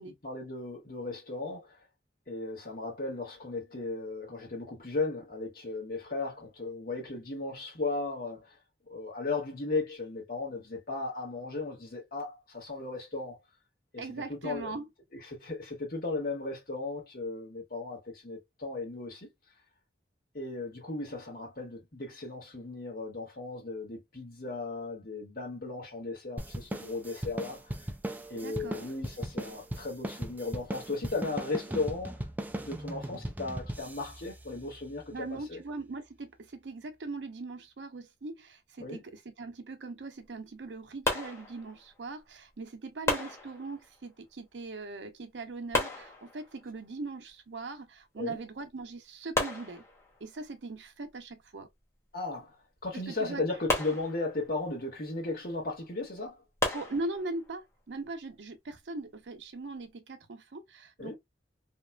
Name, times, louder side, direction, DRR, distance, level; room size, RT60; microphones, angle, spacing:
voice 1, 0.2-1.8 2.3-8.6 8.9-13.4 13.9-14.0 14.3-14.7 15.3-19.3 20.3-27.8 28.3-32.2 32.5-35.6 38.8-39.0 48.2-48.4 52.1-52.6 52.8-56.4 61.0-61.2, left 3 dB, 55° left, 1.4 m, -36 dB
voice 2, 14.0-14.9 28.3-28.9 35.1-49.8 50.2-51.7 52.9-53.4 56.7-61.2, right 3 dB, 90° right, 0.7 m, -40 dB
sound 1, 26.4-35.2, right 1 dB, 10° right, 0.3 m, -38 dB
sound 2, 41.1-42.1 43.1-44.1 45.7-46.7 48.4-48.5 48.8-48.9 49.4-50.4 53.7-54.7 56.6-57.5, left 2 dB, 15° left, 0.8 m, -33 dB
2.9 x 2.3 x 2.2 m
head